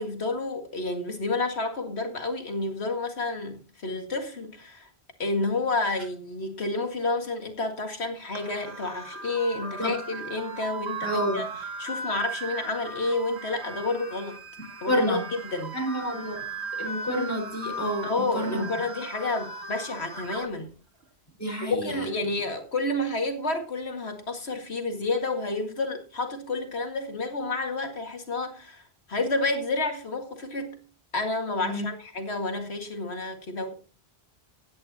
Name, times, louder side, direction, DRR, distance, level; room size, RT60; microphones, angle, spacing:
voice 1, 0.0-4.9 5.2-11.5 11.8-14.4 14.8-15.7 18.0-20.7 21.6-30.8 31.1-33.7, left 2 dB, 85° left, 5 dB, 2.3 m, -30 dB
sound 1, 8.4-20.5, right 2 dB, 90° right, 2.1 m, -37 dB
voice 2, 11.0-11.5 14.9-15.2 15.7-16.4 16.8-18.1 18.3-18.7 21.4-22.0 22.3-22.4 31.6-31.9, equal, 15° left, 2 dB, 4.5 m, -29 dB
16.5 x 10.5 x 2.9 m, 0.36 s
omnidirectional pair, 1.1 m